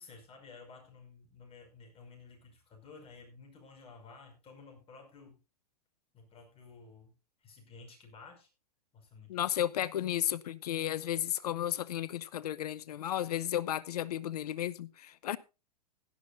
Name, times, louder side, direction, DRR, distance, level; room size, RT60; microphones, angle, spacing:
voice 1, 0.0-5.4 6.1-7.1 7.4-8.5 8.9-9.4, left 4 dB, 25° left, 5.5 m, -53 dB
voice 2, 9.3-15.4, left 11 dB, 70° left, 0.8 m, -33 dB
16.5 x 12.0 x 2.6 m
hypercardioid pair, 110°, 21 cm